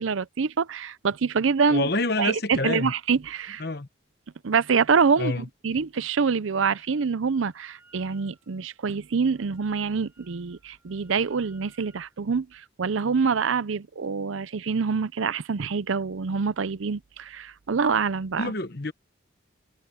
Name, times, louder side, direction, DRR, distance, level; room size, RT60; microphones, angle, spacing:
voice 1, 0.0-1.8 2.2-3.7 4.4-18.5, right 5 dB, 85° right, 0.6 m, -25 dB
voice 2, 1.7-2.9 3.6-3.9 5.2-5.4 18.4-18.9, left 2 dB, 50° left, 1.2 m, -27 dB
Wind instrument woodwind instrument, 6.7-7.1 7.3-12.2, right 3 dB, 10° right, 5.6 m, -60 dB
head